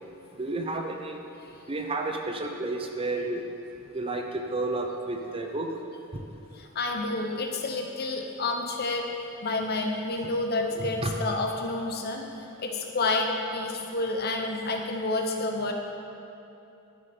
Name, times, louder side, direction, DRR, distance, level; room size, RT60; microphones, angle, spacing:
voice 1, 0.4-1.2 1.7-3.5 3.9-5.7 6.1-6.2 10.2-10.3 10.7-11.2, right 2 dB, 25° right, 3 dB, 0.6 m, -31 dB
voice 2, 6.6-9.1 9.4-12.3 12.6-15.7, left 2 dB, 45° left, 2 dB, 0.8 m, -29 dB
11.0 x 6.6 x 4.4 m, 2.9 s
head